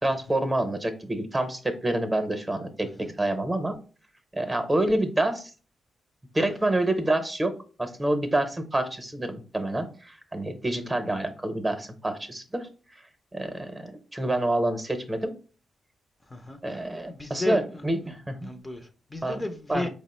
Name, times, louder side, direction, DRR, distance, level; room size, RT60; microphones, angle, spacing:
voice 1, 0.0-3.8 4.3-5.5 6.3-7.5 7.8-12.7 13.3-15.3 16.6-18.5 19.2-19.4 19.7-19.9, right 1 dB, 20° right, 0.8 m, -27 dB
voice 2, 16.3-18.1 18.4-19.9, left 2 dB, 20° left, 0.6 m, -35 dB
4.5 x 2.0 x 4.2 m
cardioid pair, 80°, 0 cm